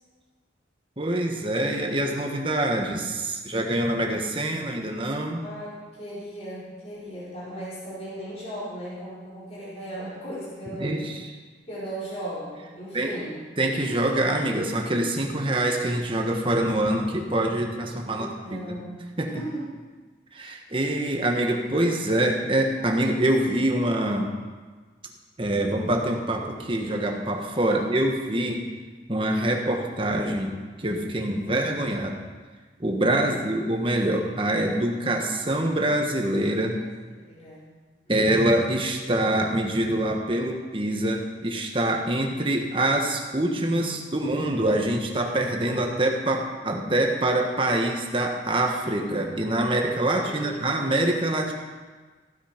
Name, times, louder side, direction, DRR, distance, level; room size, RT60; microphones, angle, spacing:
voice 1, 1.0-5.4 10.8-11.3 12.9-13.1 13.6-18.8 19.2-19.3 20.3-24.3 25.4-28.7 29.1-32.2 32.8-36.8 38.1-51.5, right 1 dB, 30° right, 2 dB, 1.4 m, -25 dB
voice 2, 5.4-11.0 11.7-13.4 18.1-19.0 19.3-19.7 27.6-27.8 33.2-33.5 37.1-37.7 50.0-50.8, right 1 dB, 35° left, -9 dB, 4.9 m, -37 dB
15.5 x 9.0 x 5.2 m, 1.4 s
head